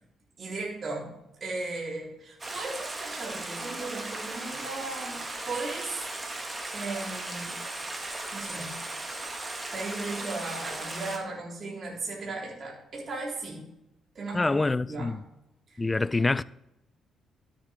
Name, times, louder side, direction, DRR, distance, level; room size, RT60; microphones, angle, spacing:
voice 1, 0.4-1.1 1.4-5.2 5.4-6.0 6.7-7.5 8.3-8.7 9.7-13.7 14.2-14.5 14.9-15.1 15.7-15.8, right 3 dB, 45° right, 3.6 m, -36 dB
Stream, 2.4-11.2, right 2 dB, 25° right, 1.7 m, -37 dB
voice 2, 14.3-15.2 15.8-16.4, left 3 dB, 20° left, 0.3 m, -26 dB
12.5 x 7.5 x 3.5 m
cardioid pair, 90°, 0 cm